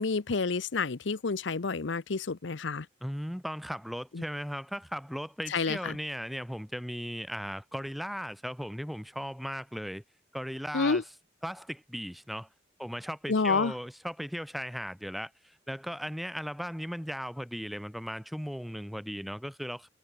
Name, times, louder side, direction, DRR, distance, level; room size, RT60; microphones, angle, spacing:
voice 1, 0.0-2.9 4.1-4.2 5.5-6.0 10.7-11.0 13.3-13.7, left 4 dB, 70° left, 0.8 m, -29 dB
voice 2, 3.0-10.0 10.3-11.0 11.4-12.5 12.8-19.9, equal, ahead, 1.3 m, -37 dB
head